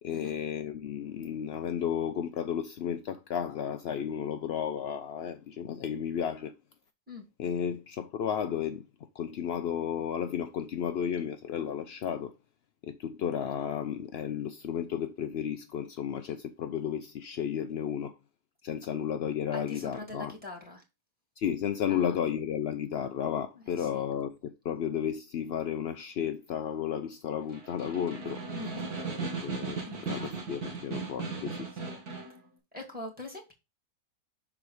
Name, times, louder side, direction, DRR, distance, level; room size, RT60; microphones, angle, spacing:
voice 1, 0.0-6.5 7.4-8.8 9.1-12.3 12.8-18.2 18.6-20.3 21.4-28.4 29.4-31.7, left 8 dB, 75° left, 0.5 m, -33 dB
voice 2, 19.5-20.8 21.9-22.1 23.7-24.0 28.5-28.9 29.9-30.5 31.8-32.0 32.7-33.5, left 2 dB, 5° right, 2.1 m, -43 dB
Snare drum, 27.4-32.4, right 4 dB, 70° right, 2.0 m, -37 dB
6.1 x 4.0 x 4.7 m
omnidirectional pair, 1.7 m